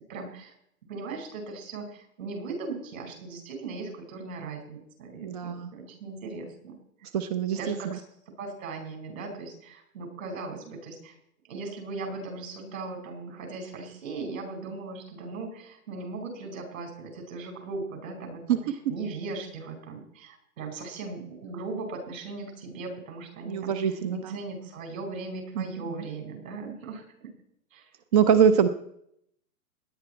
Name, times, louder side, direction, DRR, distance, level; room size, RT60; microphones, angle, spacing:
voice 1, 0.1-0.5 0.9-6.8 7.6-11.1 11.4-18.6 18.9-27.3 27.7-27.9, right 3 dB, 60° right, 4 dB, 5.3 m, -38 dB
voice 2, 5.2-5.7 7.1-8.0 23.5-24.4 25.6-26.0 28.1-28.7, right 7 dB, 25° right, 11 dB, 0.5 m, -24 dB
17.5 x 10.5 x 4.4 m, 0.72 s
hypercardioid pair, 140°, 45 cm